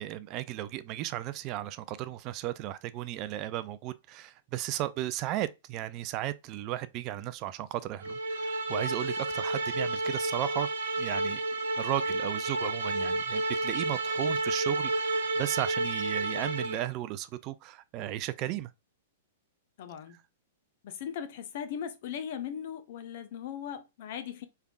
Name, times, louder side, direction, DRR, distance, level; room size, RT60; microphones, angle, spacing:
voice 1, 0.0-10.7 11.0-11.4 11.8-18.7, right 14 dB, 40° right, 0.4 m, -35 dB
sound 1, 8.0-16.9, right 2 dB, 70° right, 0.9 m, -31 dB
voice 2, 19.8-20.2 20.8-24.5, left 8 dB, 55° left, 0.8 m, -38 dB
4.5 x 3.4 x 2.3 m
figure-of-eight pair, 105°, 0 cm